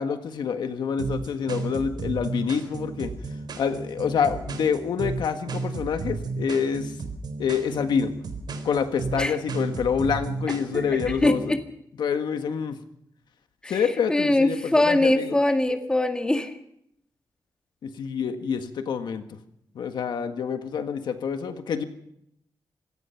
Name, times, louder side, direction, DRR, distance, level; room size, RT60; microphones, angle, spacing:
voice 1, 0.0-3.1 3.6-6.9 7.4-8.1 8.6-11.4 12.0-12.8 13.7-15.4 17.8-19.2 19.7-21.8, left 6 dB, 90° left, 8 dB, 1.6 m, -27 dB
sound 1, 1.0-11.5, right 4 dB, 80° right, 4.0 m, -33 dB
voice 2, 11.2-11.6 13.6-13.8 14.1-16.5, left 1 dB, 10° left, 5 dB, 1.9 m, -22 dB
25.5 x 17.5 x 5.8 m, 0.75 s
wide cardioid pair, 135°, 7 cm